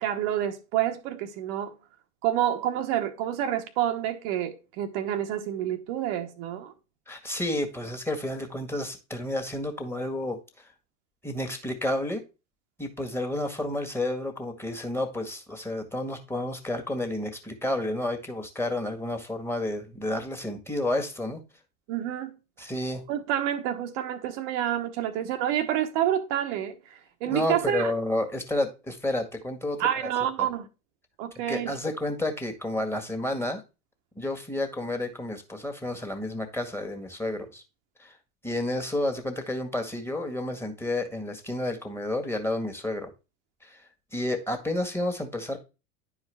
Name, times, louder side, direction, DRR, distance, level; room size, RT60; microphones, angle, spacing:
voice 1, 0.0-1.7 2.2-6.7 21.9-22.3 23.1-26.8 27.2-27.9 29.8-30.7 31.2-31.7, right 11 dB, 55° right, 1.1 m, -28 dB
voice 2, 7.1-10.7 11.2-12.2 12.8-21.4 22.6-23.0 27.3-30.1 30.4-30.5 31.5-33.6 34.2-37.6 38.0-38.1 38.4-43.1 43.6-45.6, left 1 dB, 5° left, 1.7 m, -31 dB
10.5 x 4.8 x 3.4 m
hypercardioid pair, 85°, 41 cm